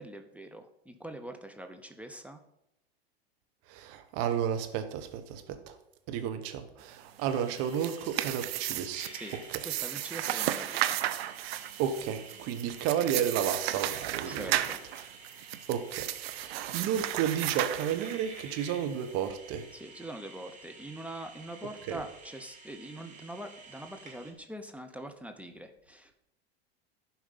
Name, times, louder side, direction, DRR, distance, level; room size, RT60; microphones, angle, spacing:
voice 1, 0.0-2.4 9.1-11.0 14.2-14.9 19.7-26.2, right 1 dB, 5° right, 6 dB, 0.7 m, -43 dB
voice 2, 3.7-5.8 6.1-9.1 9.5-9.6 11.8-14.5 15.7-19.7 21.9-22.0, right 9 dB, 50° right, 8 dB, 1.3 m, -32 dB
sound 1, 7.2-24.3, right 3 dB, 25° right, 2.3 m, -51 dB
sound 2, 7.5-18.4, right 13 dB, 70° right, 0.7 m, -34 dB
11.5 x 4.7 x 5.5 m, 0.82 s
hypercardioid pair, 110°, 31 cm